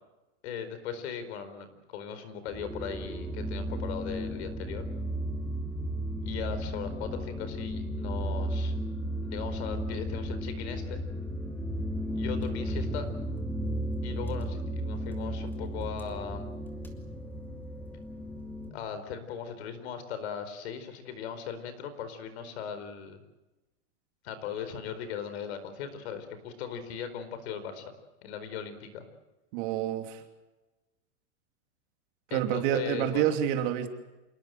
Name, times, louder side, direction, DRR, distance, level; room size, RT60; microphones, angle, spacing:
voice 1, 0.4-4.8 6.2-8.8 9.2-11.0 12.1-13.1 14.0-16.5 18.7-23.2 24.2-27.8 28.2-29.0 32.3-33.2, left 7 dB, 60° left, 11 dB, 4.6 m, -38 dB
sound 1, 2.5-18.7, equal, 5° left, 2.6 m, -34 dB
voice 2, 29.5-30.2 32.3-33.9, right 11 dB, 45° right, 5 dB, 3.0 m, -28 dB
27.5 x 20.0 x 7.8 m, 1.1 s
supercardioid pair, 165°, 36 cm